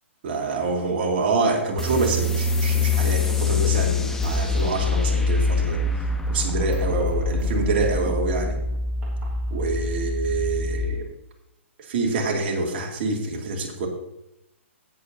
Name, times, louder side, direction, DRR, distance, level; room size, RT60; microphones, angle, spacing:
voice 1, 0.2-8.6 9.5-11.1 11.8-13.9, right 3 dB, 50° right, 1 dB, 2.2 m, -26 dB
sound 1, 1.8-8.9, left 5 dB, 5° left, 0.8 m, -25 dB
sound 2, 4.2-10.8, equal, 20° right, 3.1 m, -28 dB
16.5 x 6.9 x 2.7 m, 0.85 s
hypercardioid pair, 135°, 7 cm